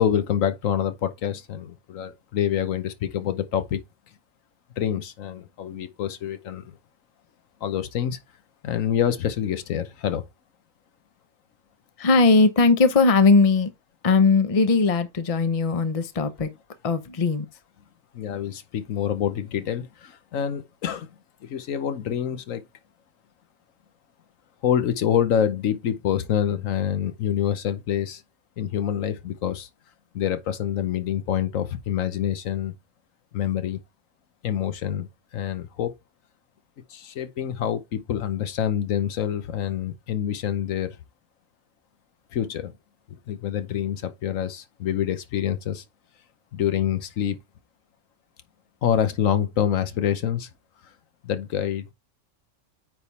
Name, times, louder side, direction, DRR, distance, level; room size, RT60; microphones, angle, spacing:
voice 1, 0.0-3.8 4.8-6.7 7.6-8.2 8.6-10.3 18.1-21.1 21.4-22.6 24.6-28.2 28.6-29.7 30.1-32.7 33.3-33.8 34.4-35.9 36.9-40.9 42.3-42.7 43.1-45.8 46.5-47.4 48.8-50.5 51.2-51.9, left 9 dB, 80° left, 1.2 m, -26 dB
voice 2, 12.0-13.7 14.0-16.5 16.8-17.5, left 4 dB, 30° left, 0.8 m, -19 dB
9.2 x 3.6 x 4.2 m
omnidirectional pair, 1.3 m